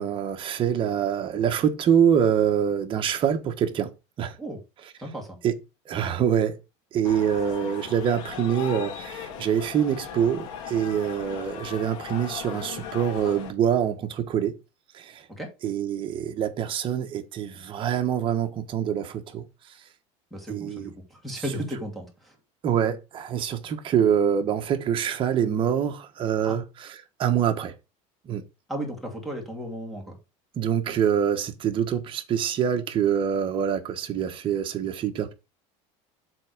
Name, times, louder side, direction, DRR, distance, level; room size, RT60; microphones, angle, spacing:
voice 1, 0.0-3.9 4.2-4.3 5.4-5.5 5.9-6.6 6.9-14.5 14.9-15.2 15.6-19.4 20.5-20.9 22.6-27.7 28.3-28.4 30.6-35.3, right 8 dB, 35° right, 1.1 m, -25 dB
voice 2, 5.0-5.4 15.4-15.5 20.3-22.3 26.4-26.6 28.7-30.2, equal, ahead, 2.4 m, -35 dB
sound 1, 7.0-13.5, left 7 dB, 85° left, 2.0 m, -38 dB
7.6 x 3.6 x 6.4 m
cardioid pair, 155°, 16 cm